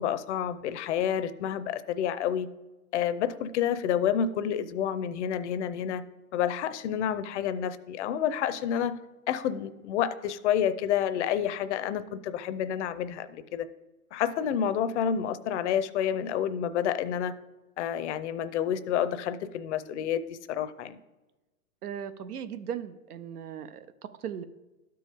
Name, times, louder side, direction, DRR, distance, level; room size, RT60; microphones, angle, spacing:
voice 1, 0.0-2.5 2.9-6.0 6.3-9.0 9.3-13.7 14.1-17.3 17.8-21.0, left 9 dB, 50° left, 0.6 m, -29 dB
voice 2, 21.8-24.5, right 8 dB, 85° right, 0.7 m, -38 dB
12.5 x 4.6 x 3.4 m
hypercardioid pair, 130°, 44 cm